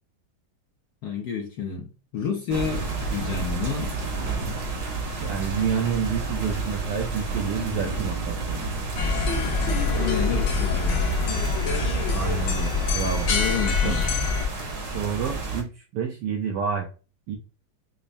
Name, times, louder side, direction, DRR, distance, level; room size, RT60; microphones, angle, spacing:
voice 1, 1.0-3.9 9.7-11.0 13.3-14.0, left 6 dB, 70° left, 1 dB, 1.0 m, -30 dB
sound 1, 2.5-15.6, right 3 dB, 60° right, 1.2 m, -30 dB
voice 2, 5.2-8.7 12.1-13.3 13.8-14.3 14.9-16.9 17.3-17.4, right 7 dB, 75° right, 2 dB, 1.0 m, -29 dB
sound 2, 9.0-14.5, left 4 dB, 85° left, 1.5 m, -25 dB
5.4 x 2.0 x 2.5 m, 0.34 s
omnidirectional pair, 2.3 m